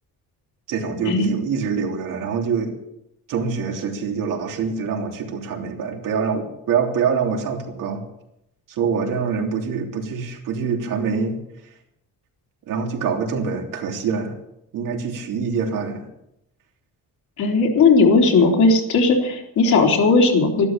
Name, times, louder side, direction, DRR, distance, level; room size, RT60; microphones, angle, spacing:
voice 1, 0.7-2.8 3.3-8.0 8.7-11.4 12.7-14.3 14.7-16.1, right 6 dB, 70° right, 1 dB, 3.3 m, -25 dB
voice 2, 17.4-20.7, left 3 dB, 60° left, 1 dB, 3.6 m, -16 dB
13.0 x 12.5 x 7.4 m, 0.81 s
cardioid pair, 140°, 34 cm